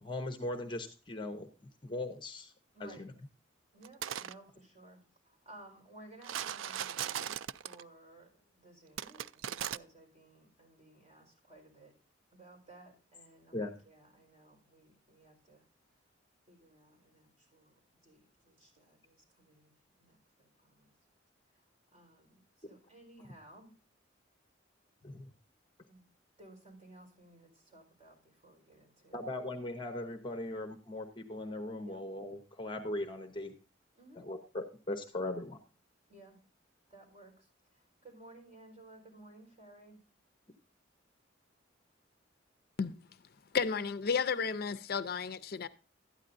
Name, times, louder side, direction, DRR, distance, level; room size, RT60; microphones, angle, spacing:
voice 1, 0.0-1.5 1.8-2.5 2.8-3.1 13.5-13.7 25.0-25.3 29.1-33.6 34.2-35.6, left 1 dB, 25° left, 0.8 m, -39 dB
voice 2, 3.7-5.0 5.2-11.9 12.3-15.6 16.5-19.7 20.0-20.9 21.5-21.6 21.9-23.7 25.9-26.0 26.4-29.2 31.8-32.0 33.9-34.2 36.1-36.4 36.9-40.0, right 2 dB, 35° right, 4.4 m, -57 dB
sound 1, 3.8-4.3 6.2-7.8 9.0-9.8, right 10 dB, 85° right, 0.4 m, -38 dB
voice 3, 43.5-45.7, left 5 dB, 50° left, 0.5 m, -32 dB
12.5 x 9.8 x 2.6 m
head